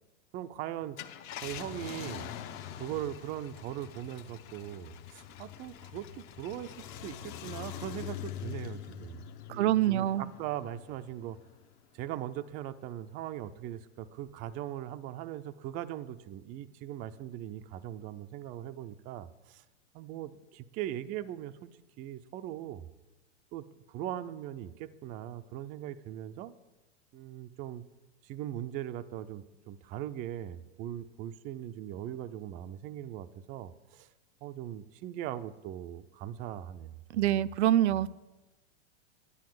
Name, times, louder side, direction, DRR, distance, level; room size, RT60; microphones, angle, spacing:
voice 1, 0.3-1.0 1.4-2.3 2.8-11.4 11.9-19.6 19.9-21.7 22.0-22.8 23.5-26.5 27.1-27.8 28.2-34.1 34.4-37.4 37.9-38.1, right 12 dB, 25° right, 9 dB, 0.4 m, -40 dB
Car, 0.8-11.7 12.1-12.2 14.3-14.5, left 10 dB, 40° left, 0.9 m, -44 dB
voice 2, 9.6-10.3 37.1-38.1, right 12 dB, 75° right, 14 dB, 0.5 m, -25 dB
10.5 x 9.9 x 7.7 m, 1.1 s
supercardioid pair, 135°, 35 cm